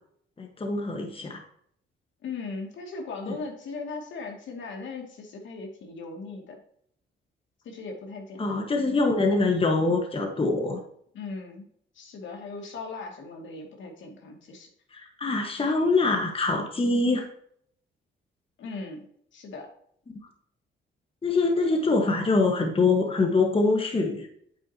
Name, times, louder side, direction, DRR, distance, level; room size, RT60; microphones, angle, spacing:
voice 1, 0.4-1.4 8.4-10.8 14.9-17.3 20.1-20.2 21.2-24.3, left 3 dB, 25° left, 3 dB, 1.5 m, -24 dB
voice 2, 2.2-6.6 7.6-8.4 11.1-11.7 11.9-14.7 18.6-19.0 19.3-19.7, left 4 dB, 70° left, 1 dB, 2.5 m, -38 dB
9.2 x 7.5 x 2.9 m, 0.66 s
cardioid pair, 90°, 20 cm